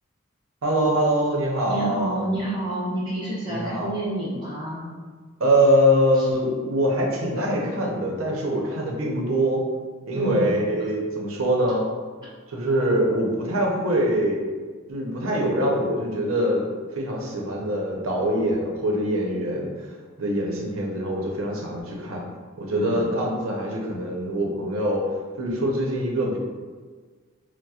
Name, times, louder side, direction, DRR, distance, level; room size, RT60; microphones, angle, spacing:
voice 1, 0.6-2.3 3.5-3.9 5.4-9.6 10.1-11.9 12.5-14.5 14.9-16.7 16.9-19.9 20.2-22.2 22.6-25.0 25.4-26.4, equal, 80° right, -1 dB, 0.6 m, -23 dB
voice 2, 1.7-4.8 10.1-10.4 22.7-23.0, right 1 dB, 20° right, -9 dB, 0.6 m, -28 dB
4.1 x 2.0 x 2.3 m, 1.5 s
head